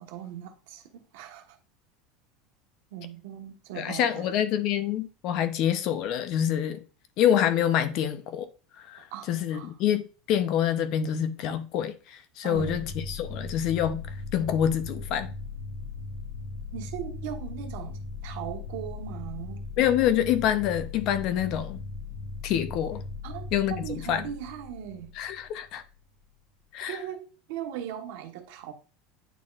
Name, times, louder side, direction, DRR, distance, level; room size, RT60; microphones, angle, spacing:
voice 1, 0.0-1.6 2.9-4.4 9.1-9.7 12.4-12.9 16.7-19.6 23.2-25.1 26.9-28.7, right 10 dB, 70° right, 1.2 m, -39 dB
voice 2, 3.8-6.8 7.2-8.5 8.8-14.0 14.3-15.3 19.8-21.8 22.4-23.0 23.5-23.7 24.1-24.2 25.2-25.8 26.7-27.0, left 10 dB, 40° left, 0.6 m, -26 dB
sound 1, 12.5-26.0, left 4 dB, 10° right, 1.8 m, -38 dB
9.1 x 4.3 x 2.4 m
supercardioid pair, 170°, 0 cm